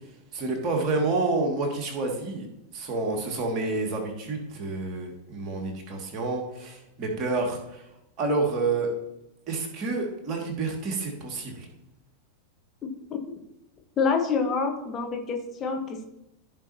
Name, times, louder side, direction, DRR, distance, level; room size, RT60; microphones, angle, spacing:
voice 1, 0.3-2.5 2.7-7.8 8.2-8.9 9.5-11.7, right 3 dB, 35° right, 2 dB, 2.2 m, -29 dB
voice 2, 12.8-13.2 14.0-16.1, left 5 dB, 25° left, 3 dB, 1.3 m, -27 dB
14.5 x 5.4 x 2.9 m, 0.87 s
figure-of-eight pair, 90°, 0 cm